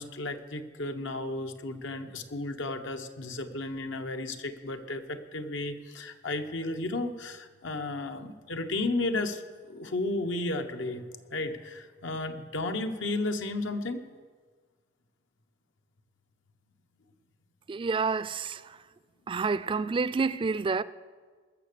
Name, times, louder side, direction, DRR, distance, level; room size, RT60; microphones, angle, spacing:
voice 1, 0.0-9.4 9.7-11.0 11.3-14.0 19.8-19.9, left 2 dB, 80° left, 1.0 m, -33 dB
voice 2, 17.7-18.8 19.3-20.8, right 4 dB, 25° right, 0.3 m, -29 dB
20.0 x 6.8 x 6.8 m
head